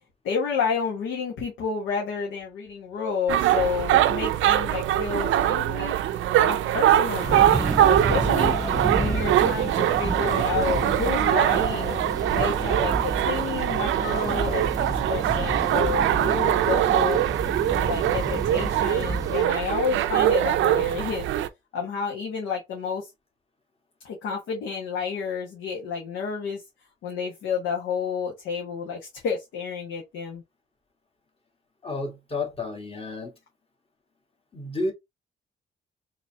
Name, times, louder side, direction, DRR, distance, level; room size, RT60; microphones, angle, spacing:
voice 1, 0.2-6.0 6.4-8.6 9.0-12.0 12.3-17.2 17.7-21.3 21.7-23.1 24.0-26.6 27.0-30.4, left 6 dB, 85° left, 1.3 m, -30 dB
sound 1, 3.3-21.5, right 12 dB, 75° right, 0.5 m, -23 dB
sound 2, 6.8-12.3, left 2 dB, 60° left, 2.1 m, -38 dB
sound 3, 7.2-19.5, right 3 dB, 20° right, 0.5 m, -31 dB
voice 2, 31.8-33.3 34.5-34.9, left 2 dB, 30° left, 1.6 m, -31 dB
4.0 x 3.1 x 2.7 m
cardioid pair, 90°, 20 cm